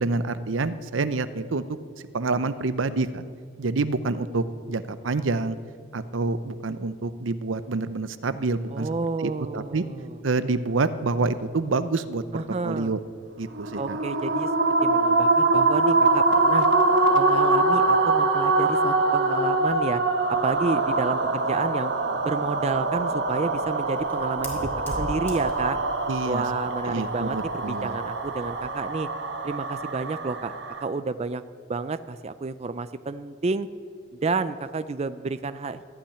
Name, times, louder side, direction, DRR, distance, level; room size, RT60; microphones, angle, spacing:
voice 1, 0.0-1.6 2.1-3.2 3.6-5.6 5.9-8.9 9.2-9.8 10.2-13.0 13.4-14.0 26.1-26.4 26.9-28.0, right 3 dB, 80° right, 13 dB, 0.7 m, -27 dB
voice 2, 8.7-10.2 12.3-12.9 13.8-14.5 14.8-16.7 17.1-20.0 20.3-21.9 22.2-25.8 26.3-29.1 29.4-30.5 30.8-31.4 31.7-33.7 34.2-35.9, right 3 dB, 35° right, 12 dB, 0.4 m, -30 dB
sound 1, 13.5-30.8, right 2 dB, 60° right, 1.4 m, -24 dB
Fire, 23.1-28.7, equal, 10° left, 2.7 m, -41 dB
14.5 x 8.8 x 10.0 m, 2.1 s
head